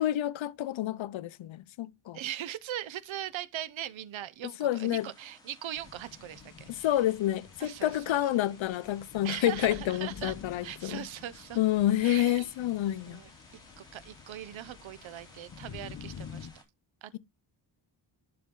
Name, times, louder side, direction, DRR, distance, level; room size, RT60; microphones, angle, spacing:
voice 1, 0.0-2.2 4.6-5.1 6.7-11.1 11.6-13.2, left 13 dB, 90° left, 0.7 m, -29 dB
voice 2, 2.1-6.9 7.6-8.2 9.2-10.3 10.6-11.6 12.0-12.5 13.1-16.5 17.0-17.2, right 12 dB, 90° right, 0.8 m, -40 dB
sound 1, 4.7-16.6, left 1 dB, 10° left, 2.9 m, -58 dB
sound 2, 5.8-16.5, left 7 dB, 45° left, 1.0 m, -49 dB
11.5 x 4.3 x 3.8 m
wide cardioid pair, 155°, 45 cm